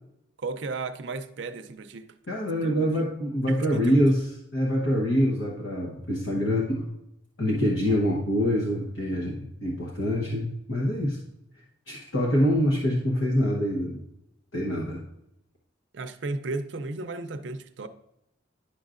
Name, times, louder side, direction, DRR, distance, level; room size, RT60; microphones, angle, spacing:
voice 1, 0.4-2.1 2.5-3.0 3.5-4.0 15.9-17.9, right 3 dB, 65° right, 0.5 m, -34 dB
voice 2, 2.3-4.3 4.5-6.8 7.4-11.2 11.9-14.0 14.5-15.0, equal, 65° left, 1.0 m, -25 dB
10.0 x 6.2 x 2.5 m
head